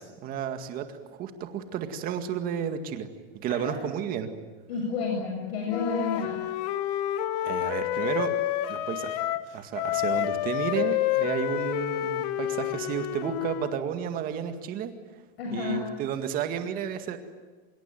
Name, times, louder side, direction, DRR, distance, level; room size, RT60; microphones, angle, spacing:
voice 1, 0.0-3.1 3.4-4.3 7.4-8.3 8.7-9.3 9.5-14.9 15.5-17.2, right 9 dB, 25° right, 7 dB, 2.0 m, -32 dB
voice 2, 4.7-6.4 10.0-10.1 15.4-15.9, left 4 dB, 65° left, 0 dB, 7.4 m, -30 dB
Wind instrument woodwind instrument, 5.7-9.5 9.7-13.8, left 14 dB, 40° left, 1.1 m, -29 dB
25.5 x 23.0 x 9.2 m, 1.3 s
supercardioid pair, 175°, 34 cm